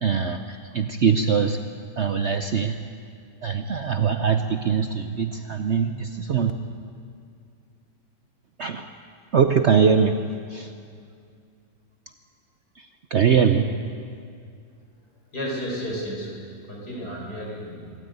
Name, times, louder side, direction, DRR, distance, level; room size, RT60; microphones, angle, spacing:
voice 1, 0.0-1.6 2.0-2.8 3.4-6.5 8.6-8.9 9.3-10.2 10.5-10.7 12.8-12.9 13.1-13.7, right 6 dB, 55° right, 7 dB, 0.8 m, -22 dB
voice 2, 15.3-18.0, equal, 65° left, -2 dB, 5.6 m, -33 dB
25.0 x 13.5 x 9.3 m, 2.3 s
omnidirectional pair, 1.8 m